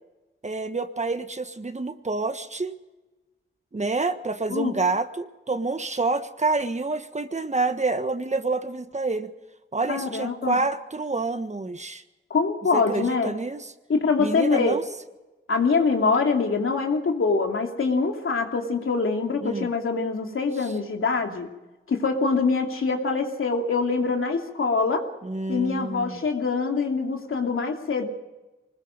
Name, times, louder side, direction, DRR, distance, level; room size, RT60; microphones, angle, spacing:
voice 1, 0.4-2.7 3.7-9.3 9.7-12.0 12.7-13.7 14.2-14.8 19.4-19.7 25.2-26.2, right 3 dB, 35° right, 9 dB, 1.4 m, -28 dB
voice 2, 9.9-10.6 12.3-13.3 13.9-14.8 15.5-21.5 21.9-25.1 25.5-28.1, left 4 dB, 80° left, 3 dB, 2.7 m, -24 dB
25.0 x 20.5 x 5.1 m, 1.1 s
wide cardioid pair, 75°, 21 cm